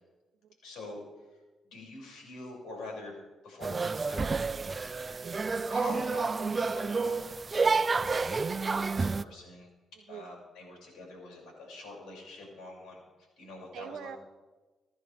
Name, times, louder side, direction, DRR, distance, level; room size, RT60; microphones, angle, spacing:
voice 1, 0.6-1.0 1.7-3.1 3.4-4.9 5.7-9.7 10.1-13.0 13.4-14.1, left 2 dB, 85° left, -2 dB, 6.4 m, -45 dB
sound 1, 3.6-9.2, right 4 dB, 35° right, 0.5 m, -30 dB
Drawer open or close, 4.0-5.2 7.7-8.8, right 2 dB, 10° right, 3.0 m, -55 dB
voice 2, 5.1-5.5 9.9-10.3 13.7-14.2, right 9 dB, 80° right, 9 dB, 0.9 m, -45 dB
28.5 x 11.0 x 3.5 m, 1.2 s
cardioid pair, 70°, 0 cm